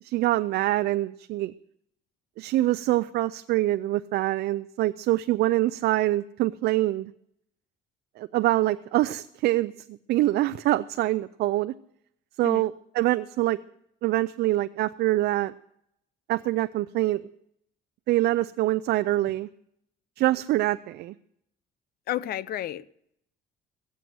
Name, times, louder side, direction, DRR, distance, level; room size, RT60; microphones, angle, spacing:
voice 1, 0.0-1.5 2.4-7.1 8.2-11.7 12.4-13.6 14.0-15.5 16.3-17.3 18.1-19.5 20.2-21.1, right 16 dB, 70° right, 0.5 m, -25 dB
voice 2, 22.1-22.9, left 12 dB, 65° left, 0.6 m, -31 dB
17.0 x 7.6 x 9.3 m
cardioid pair, 110°, 17 cm